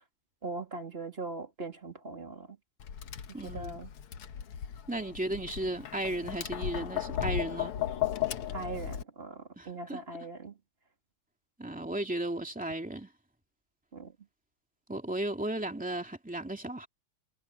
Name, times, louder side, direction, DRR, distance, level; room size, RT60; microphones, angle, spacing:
voice 1, 0.4-2.6 3.4-3.9 8.5-10.5 13.9-14.1, right 3 dB, 25° right, 3.1 m, -40 dB
Tap, 2.8-9.0, left 10 dB, 85° left, 2.2 m, -35 dB
voice 2, 3.3-3.8 4.9-7.7 9.6-10.0 11.6-13.1 14.9-16.9, right 1 dB, 5° right, 2.4 m, -35 dB
omnidirectional pair, 2.4 m